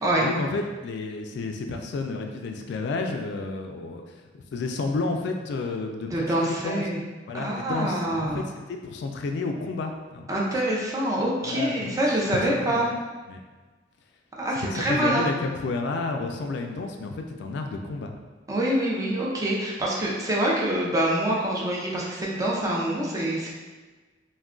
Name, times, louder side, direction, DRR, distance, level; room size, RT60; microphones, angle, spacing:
voice 1, 0.0-6.8 7.3-10.3 11.4-12.0 12.3-12.9 13.3-13.4 14.6-18.1, left 3 dB, 65° left, 3 dB, 0.3 m, -31 dB
voice 2, 6.1-7.0 7.3-8.5 10.3-12.9 14.4-15.2 18.5-23.5, right 1 dB, 20° right, -4 dB, 0.5 m, -25 dB
2.3 x 2.2 x 3.6 m, 1.3 s
head